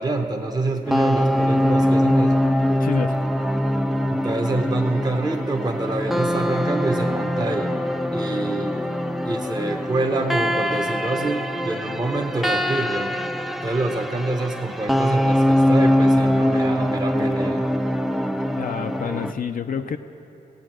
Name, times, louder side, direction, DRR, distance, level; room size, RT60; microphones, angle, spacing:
voice 1, 0.0-2.4 4.1-7.7 8.1-8.8 9.2-13.2 13.6-17.6, right 2 dB, 25° right, 3 dB, 0.9 m, -26 dB
sound 1, 0.9-19.3, left 1 dB, ahead, 0.4 m, -22 dB
voice 2, 2.8-3.1 18.5-20.0, left 7 dB, 55° left, 7 dB, 0.5 m, -28 dB
16.0 x 8.8 x 7.5 m, 3.0 s
wide cardioid pair, 95°, 17 cm